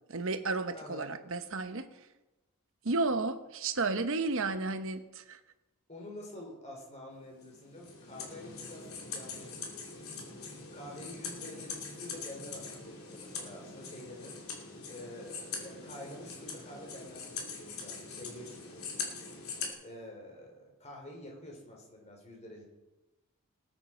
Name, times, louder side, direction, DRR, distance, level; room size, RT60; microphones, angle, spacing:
voice 1, 0.1-1.9 2.8-5.4, right 3 dB, 65° right, 9 dB, 1.0 m, -32 dB
voice 2, 0.7-1.2 5.9-9.9 10.7-14.4 14.9-18.8 19.8-22.6, left 1 dB, 30° left, 0 dB, 3.5 m, -48 dB
sound 1, 7.4-19.7, left 4 dB, 75° left, 2.9 m, -43 dB
19.5 x 9.6 x 4.4 m, 1.0 s
head